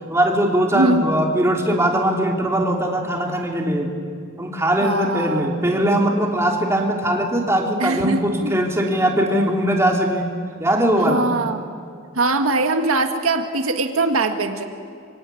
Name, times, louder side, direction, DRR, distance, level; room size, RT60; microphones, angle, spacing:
voice 1, 0.1-3.9 4.4-10.3 10.6-11.3, right 1 dB, 15° right, 0 dB, 3.2 m, -20 dB
voice 2, 0.7-1.2 4.8-5.6 7.8-8.6 11.0-11.6 12.2-14.6, right 2 dB, 90° right, 5 dB, 1.8 m, -22 dB
26.5 x 24.5 x 8.5 m, 2.3 s
head